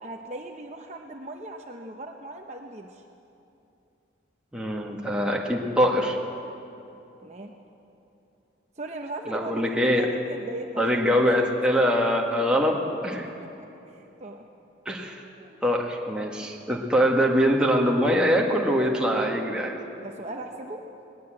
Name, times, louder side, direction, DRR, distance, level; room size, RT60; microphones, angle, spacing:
voice 1, 0.0-3.0 7.2-7.5 8.8-11.8 12.5-13.0 13.6-14.5 15.4-15.6 16.3-16.5 20.0-20.8, right 1 dB, 35° right, 2 dB, 0.9 m, -39 dB
voice 2, 4.5-6.2 9.3-10.1 10.8-12.8 13.0-13.3 14.8-15.2 15.6-19.7, equal, 5° right, -1 dB, 1.8 m, -23 dB
20.5 x 19.0 x 7.8 m, 2.9 s
head